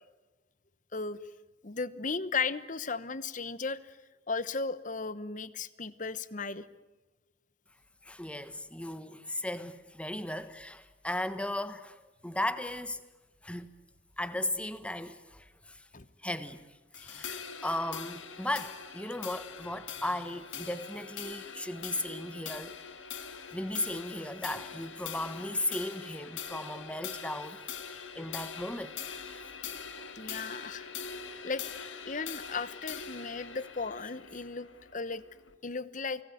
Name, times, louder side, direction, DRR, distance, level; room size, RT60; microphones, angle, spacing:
voice 1, 1.6-3.9 4.3-6.7 15.9-16.1 30.2-30.9 31.4-31.6 32.1-35.2 35.6-36.2, left 4 dB, 40° left, 1.0 m, -35 dB
voice 2, 8.0-13.0 13.4-13.7 14.2-15.8 16.2-16.6 16.9-22.8 23.5-29.0 29.3-29.4, left 1 dB, 5° left, 1.3 m, -36 dB
sound 1, 16.9-35.5, left 7 dB, 80° left, 2.1 m, -43 dB
29.5 x 19.0 x 9.4 m
head